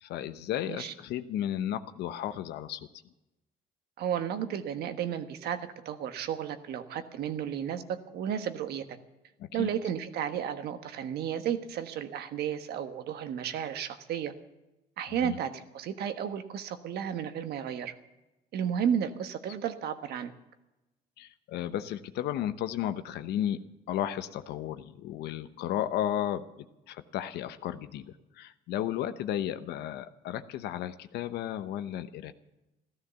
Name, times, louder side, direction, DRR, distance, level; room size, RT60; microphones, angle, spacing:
voice 1, 0.0-2.9 9.4-9.7 15.2-15.4 21.2-23.6 23.9-32.3, left 11 dB, 80° left, 11 dB, 0.8 m, -34 dB
voice 2, 4.0-9.0 9.5-14.3 15.0-17.9 18.5-20.3, right 9 dB, 70° right, 9 dB, 1.4 m, -33 dB
14.5 x 13.0 x 7.0 m, 1.0 s
cardioid pair, 110°, 17 cm